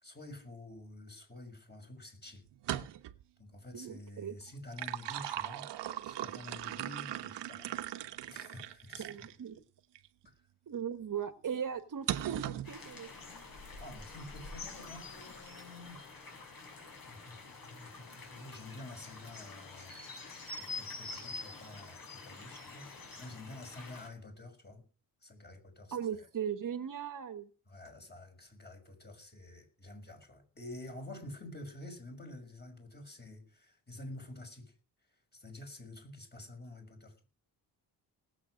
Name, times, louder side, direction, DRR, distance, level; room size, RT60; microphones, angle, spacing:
voice 1, 0.0-2.5 3.4-7.7 8.3-9.3 10.2-10.3 13.8-16.2 17.1-24.8 25.2-26.3 27.7-34.7 35.3-37.1, left 1 dB, 25° left, 6.1 m, -49 dB
pouring coffee, 2.5-3.2 4.5-9.3 10.0-10.1 12.1-12.7, right 12 dB, 85° right, 1.2 m, -39 dB
voice 2, 3.7-4.3 9.0-9.6 10.7-13.1 25.9-27.5, right 8 dB, 50° right, 1.4 m, -38 dB
sound 1, 12.6-24.1, left 3 dB, 55° left, 6.5 m, -47 dB
19.0 x 8.4 x 6.4 m
cardioid pair, 95°, 41 cm